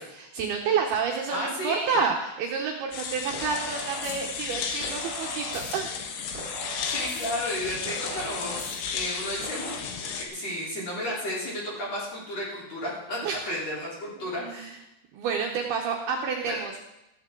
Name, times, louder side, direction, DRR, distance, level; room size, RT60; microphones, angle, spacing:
voice 1, 0.0-5.9 13.2-13.6 14.2-14.8 15.1-16.7, right 5 dB, 70° right, 1 dB, 2.5 m, -29 dB
voice 2, 1.3-2.0 6.9-8.6 8.9-14.7 16.5-16.6, left 1 dB, 35° left, -5 dB, 4.4 m, -33 dB
sound 1, 2.9-10.3, left 6 dB, 90° left, 3.8 m, -34 dB
sound 2, 3.3-4.1 4.8-5.7 6.3-7.2 7.8-8.8 9.4-9.8, right 1 dB, 15° right, 6.4 m, -39 dB
14.5 x 14.0 x 3.8 m, 0.91 s
omnidirectional pair, 5.3 m